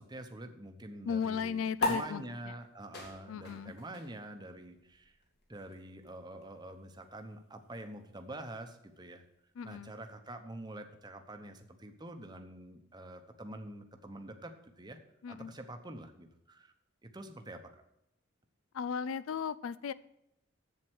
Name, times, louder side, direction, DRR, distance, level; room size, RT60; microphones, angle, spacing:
voice 1, 0.0-5.2 5.5-9.2 9.6-15.0 15.3-16.7 17.0-17.7, right 1 dB, 20° right, 6 dB, 0.8 m, -46 dB
voice 2, 1.1-2.6 3.3-3.7 9.5-9.9 15.2-15.5 18.7-19.9, left 6 dB, 85° left, 17 dB, 0.4 m, -36 dB
sound 1, 1.8-8.6, left 2 dB, 55° left, 2.1 m, -41 dB
7.7 x 7.6 x 6.2 m, 0.82 s
head